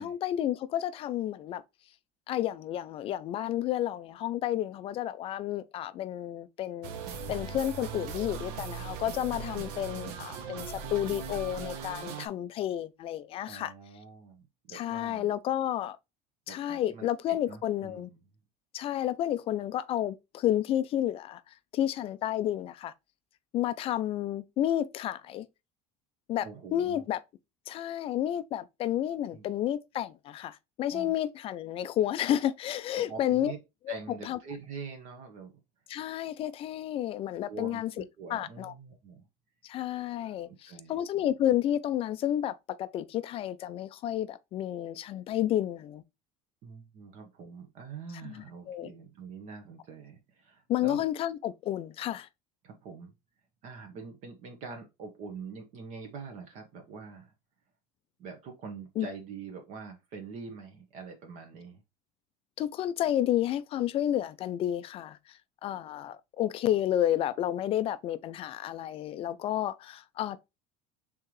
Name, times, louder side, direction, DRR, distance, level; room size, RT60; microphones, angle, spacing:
voice 1, 0.0-1.6 2.3-6.9 7.3-13.7 14.7-16.0 16.5-18.1 18.7-21.4 21.7-22.9 23.5-25.5 26.3-26.5 26.7-27.2 27.7-33.5 33.9-34.0 34.2-34.4 35.9-37.9 38.3-38.7 39.6-46.0 48.2-48.9 50.7-52.3 59.0-59.1 62.6-65.2 65.6-70.4, left 12 dB, 35° left, 0.4 m, -31 dB
sound 1, 6.8-12.3, right 6 dB, 70° right, 1.0 m, -39 dB
voice 2, 9.6-10.1 13.5-15.3 16.5-18.2 26.4-27.1 29.3-29.5 30.9-31.1 32.9-33.6 33.9-35.6 37.5-39.3 40.2-40.9 46.6-51.0 52.6-53.1 53.6-57.3 58.2-61.8, right 5 dB, 45° right, 1.1 m, -45 dB
4.5 x 3.7 x 3.1 m
cardioid pair, 155°, 17 cm